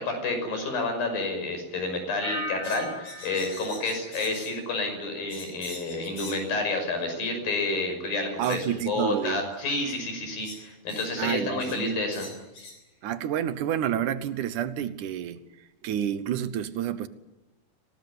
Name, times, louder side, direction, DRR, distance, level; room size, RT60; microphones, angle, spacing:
voice 1, 0.0-12.3, left 2 dB, 70° left, 7.5 m, -29 dB
sound 1, 2.2-5.1 5.4-5.9, equal, 25° right, 4.8 m, -39 dB
sound 2, 2.6-4.6 5.3-6.5 7.6-7.7 8.4-8.6 9.8-10.0 10.4-11.1 11.6-11.8 12.1-12.8, left 3 dB, 50° left, 6.3 m, -43 dB
voice 2, 8.4-9.5 11.2-12.0 13.0-15.4 15.8-17.1, right 10 dB, 65° right, 2.2 m, -29 dB
25.0 x 19.0 x 9.6 m
omnidirectional pair, 4.3 m